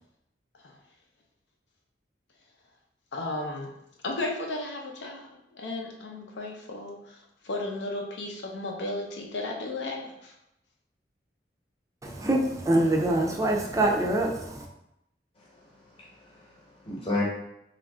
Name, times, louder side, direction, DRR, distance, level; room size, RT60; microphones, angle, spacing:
voice 1, 3.1-3.7 4.0-10.3, left 2 dB, 80° left, 0 dB, 0.6 m, -34 dB
voice 2, 12.0-14.7, right 1 dB, 20° right, 0 dB, 0.5 m, -25 dB
voice 3, 15.5-17.2, left 2 dB, 35° left, -4 dB, 1.0 m, -33 dB
3.0 x 2.4 x 3.5 m, 0.83 s
head